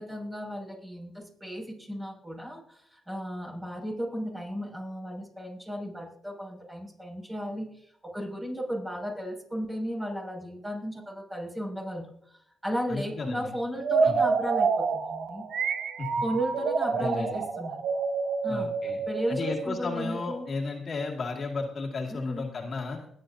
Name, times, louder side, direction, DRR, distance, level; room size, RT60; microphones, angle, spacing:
voice 1, 0.0-15.4 16.2-17.8 18.4-18.7 19.1-20.4 22.1-22.5, equal, 15° right, -1 dB, 6.0 m, -35 dB
voice 2, 12.9-13.5 14.0-14.2 16.0-16.1 17.0-17.4 18.5-19.0 19.3-23.0, left 4 dB, 45° left, -1 dB, 2.2 m, -34 dB
sound 1, 13.8-20.5, right 5 dB, 65° right, 1.2 m, -28 dB
21.0 x 9.5 x 2.7 m, 0.70 s
cardioid pair, 90°, 0 cm